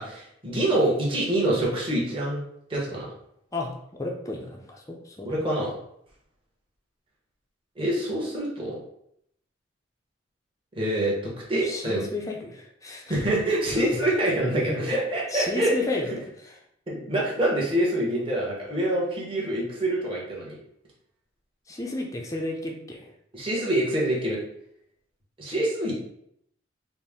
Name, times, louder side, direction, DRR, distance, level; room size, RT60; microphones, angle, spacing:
voice 1, 0.0-2.4 2.7-3.1 5.2-5.7 7.8-8.8 10.7-11.1 11.5-12.0 13.1-15.7 16.9-20.6 23.3-24.4 25.4-26.1, right 1 dB, 25° right, -5 dB, 1.0 m, -26 dB
voice 2, 4.0-5.4 11.6-13.3 14.6-14.8 15.3-16.6 21.7-23.1, left 2 dB, 15° left, 1 dB, 0.4 m, -33 dB
4.1 x 2.0 x 3.5 m, 0.73 s
head